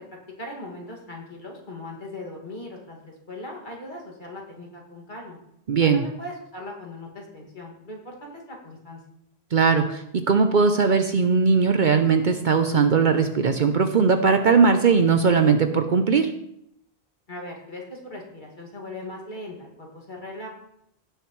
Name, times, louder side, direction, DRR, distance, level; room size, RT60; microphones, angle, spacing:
voice 1, 0.4-5.4 5.9-9.0 17.3-20.5, left 1 dB, 45° left, -1 dB, 2.3 m, -39 dB
voice 2, 5.7-6.0 9.5-16.3, right 5 dB, 55° right, 7 dB, 0.7 m, -19 dB
17.0 x 6.6 x 3.1 m, 0.77 s
omnidirectional pair, 1.1 m